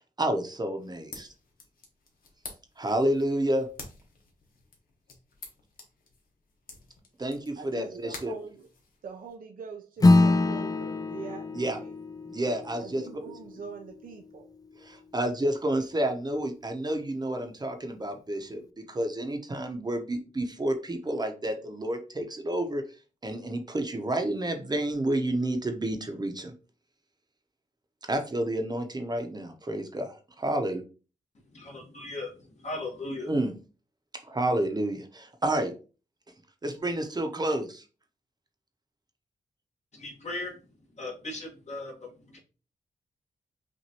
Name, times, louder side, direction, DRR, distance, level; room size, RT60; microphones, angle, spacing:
voice 1, 0.2-1.3 2.8-3.7 7.2-7.8 8.2-8.3 11.5-11.8 12.3-13.0 14.9-22.8 23.2-26.5 28.1-30.8 33.3-33.5 34.2-35.7 36.6-37.8, right 1 dB, 30° right, 5 dB, 0.8 m, -30 dB
sound 1, 0.8-9.3, left 3 dB, 90° left, 1.1 m, -49 dB
voice 2, 7.6-8.7 9.0-12.0 12.8-14.5, right 5 dB, 75° right, 3 dB, 0.6 m, -43 dB
Acoustic guitar / Strum, 10.0-14.8, left 2 dB, 25° left, 0.4 m, -25 dB
voice 3, 31.6-32.3 32.6-33.3 39.9-40.6 41.0-42.4, left 2 dB, 50° left, 0 dB, 1.6 m, -37 dB
5.8 x 2.6 x 2.9 m, 0.34 s
wide cardioid pair, 90°, 14 cm